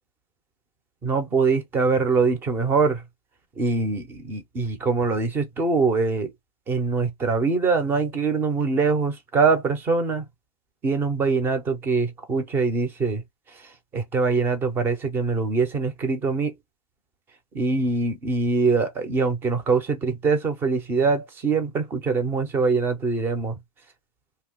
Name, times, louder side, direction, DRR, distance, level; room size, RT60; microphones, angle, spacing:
voice 1, 1.0-3.0 3.6-6.3 6.7-10.3 10.8-13.2 13.9-16.5 17.5-23.6, right 4 dB, 10° right, 0.4 m, -23 dB
2.6 x 2.2 x 3.6 m
hypercardioid pair, 150°, 21 cm